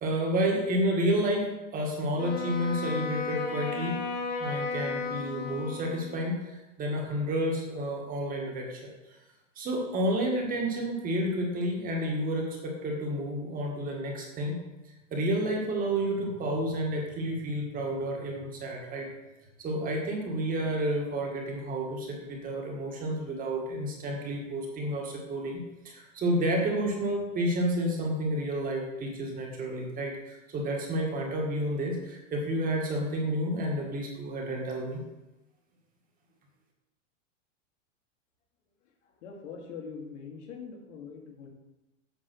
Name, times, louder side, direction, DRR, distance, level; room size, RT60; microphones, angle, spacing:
voice 1, 0.0-4.0 4.4-8.9 9.6-14.6 15.1-19.1 19.6-35.0, right 1 dB, 20° right, -1 dB, 1.8 m, -30 dB
Wind instrument woodwind instrument, 2.1-6.3, left 4 dB, 25° left, 1.2 m, -34 dB
voice 2, 38.8-41.5, left 5 dB, 65° left, 0 dB, 2.4 m, -43 dB
8.4 x 5.3 x 6.2 m, 1.0 s
hypercardioid pair, 145°, 38 cm